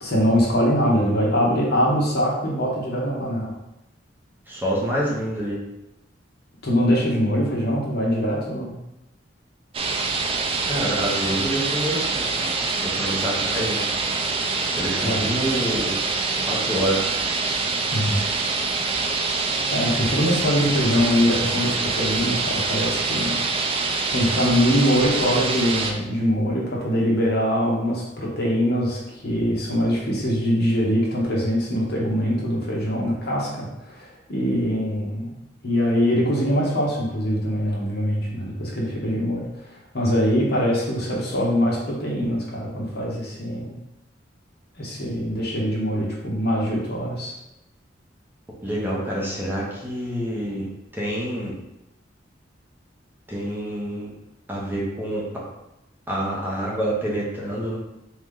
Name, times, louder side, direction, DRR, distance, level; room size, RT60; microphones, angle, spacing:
voice 1, 0.0-3.5 6.6-8.8 15.0-15.3 17.9-18.2 19.7-35.3 35.6-39.7 39.9-43.8 44.8-47.3, equal, 60° left, -3 dB, 1.2 m, -23 dB
voice 2, 4.5-5.6 10.6-12.5 12.8-13.8 14.7-15.9 16.5-17.1 48.6-50.7 50.9-51.5 53.3-54.1 54.5-55.2 56.1-57.8, right 1 dB, 10° right, -5 dB, 0.9 m, -27 dB
sound 1, 9.7-25.9, right 4 dB, 30° right, 0.4 m, -25 dB
3.8 x 3.1 x 3.7 m, 0.91 s
head